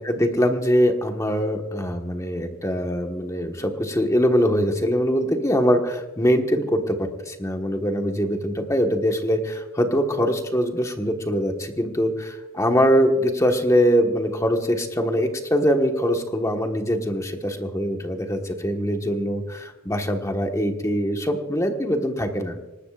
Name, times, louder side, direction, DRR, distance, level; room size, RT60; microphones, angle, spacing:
voice 1, 0.0-22.6, equal, 15° left, 4 dB, 1.4 m, -23 dB
24.5 x 19.0 x 2.5 m, 1.1 s
head